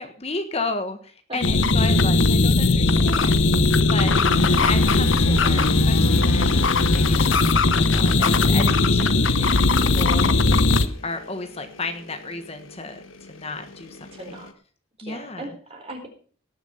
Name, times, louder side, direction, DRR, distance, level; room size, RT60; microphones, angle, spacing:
voice 1, 0.0-4.1 4.6-10.3 11.0-13.0 13.3-14.1 15.0-15.5, left 3 dB, 30° left, 7 dB, 1.4 m, -33 dB
sound 1, 1.4-10.9, left 3 dB, 70° left, 1.0 m, -18 dB
sound 2, 4.3-14.5, left 2 dB, 85° left, 1.5 m, -35 dB
voice 2, 14.1-14.5 15.0-16.1, right 1 dB, 30° right, 3 dB, 4.0 m, -38 dB
18.5 x 7.1 x 5.7 m, 0.43 s
head